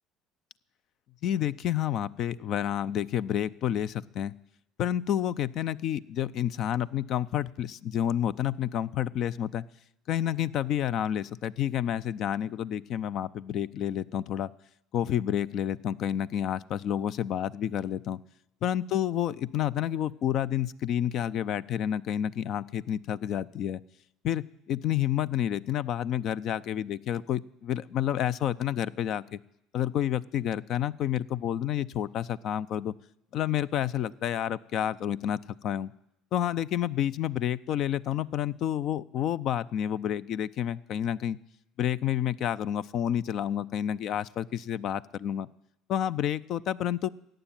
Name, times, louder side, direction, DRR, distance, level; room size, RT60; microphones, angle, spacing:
voice 1, 1.2-4.3 4.8-9.7 10.1-14.5 14.9-18.2 18.6-23.8 24.2-29.4 29.7-32.9 33.3-35.9 36.3-41.4 41.8-45.5 45.9-47.1, left 10 dB, 60° left, 17 dB, 0.5 m, -29 dB
14.5 x 9.0 x 9.1 m, 0.80 s
hypercardioid pair, 75°, 0 cm